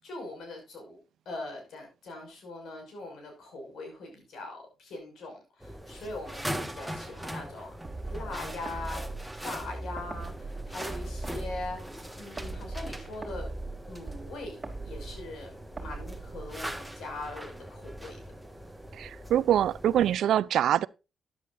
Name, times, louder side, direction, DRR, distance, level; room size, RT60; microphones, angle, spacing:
voice 1, 0.0-1.0 1.3-7.7 8.1-9.0 9.4-13.5 13.8-18.2, left 2 dB, 80° left, 5.8 m, -41 dB
sound 1, 5.6-20.2, equal, ahead, 1.5 m, -41 dB
sound 2, 7.8-16.9, right 2 dB, 25° right, 2.9 m, -40 dB
voice 2, 18.9-20.9, right 11 dB, 85° right, 0.5 m, -24 dB
13.5 x 10.5 x 2.6 m
cardioid pair, 100°, 0 cm